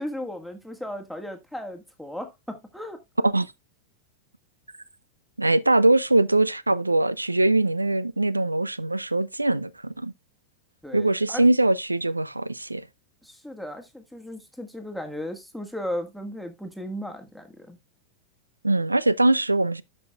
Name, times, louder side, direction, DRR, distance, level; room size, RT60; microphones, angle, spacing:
voice 1, 0.0-3.0 10.8-11.5 13.2-17.8, left 1 dB, ahead, 1.4 m, -36 dB
voice 2, 5.4-10.1 10.9-12.9 18.6-19.8, right 2 dB, 85° right, 0.3 m, -22 dB
13.0 x 5.4 x 2.3 m
figure-of-eight pair, 90°, 0 cm